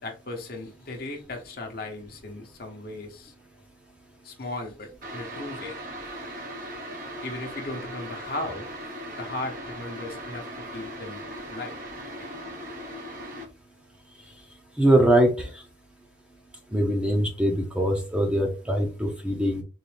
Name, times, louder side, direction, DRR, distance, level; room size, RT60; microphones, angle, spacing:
voice 1, 0.0-3.3 4.2-5.8 7.2-8.7 9.2-11.8 12.2-12.3, left 2 dB, 55° left, 1.0 m, -37 dB
sound 1, 5.0-13.5, right 1 dB, 50° right, 1.0 m, -38 dB
voice 2, 14.8-15.5 16.7-19.6, right 1 dB, 5° right, 0.7 m, -22 dB
4.0 x 2.6 x 3.3 m
head